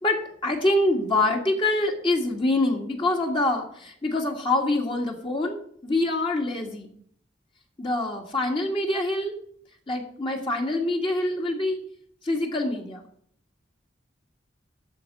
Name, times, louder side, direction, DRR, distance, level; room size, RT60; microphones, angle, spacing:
voice 1, 0.0-6.9 7.8-9.3 9.9-11.8 12.2-13.0, left 2 dB, 30° left, 1 dB, 1.7 m, -25 dB
13.0 x 4.4 x 8.3 m, 0.64 s
head